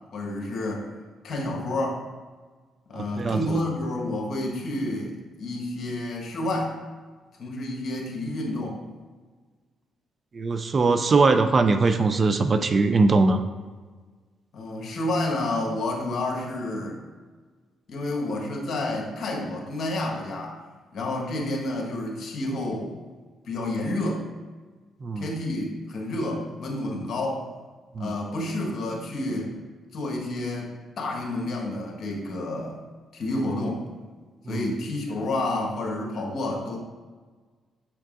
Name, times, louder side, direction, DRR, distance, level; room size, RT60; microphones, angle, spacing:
voice 1, 0.1-0.9 1.2-2.0 2.9-6.8 7.4-8.8 14.5-17.0 17.9-20.6 20.9-22.9 23.5-24.2 25.2-27.5 28.0-29.5 29.9-32.8 33.1-33.8 34.5-36.8, left 1 dB, 60° left, 0 dB, 1.4 m, -29 dB
voice 2, 2.9-3.4 10.3-13.4 25.0-25.3 28.0-28.1 34.5-34.7, right 3 dB, 40° right, 8 dB, 0.4 m, -21 dB
6.6 x 5.8 x 2.6 m, 1.4 s
cardioid pair, 90°, 0 cm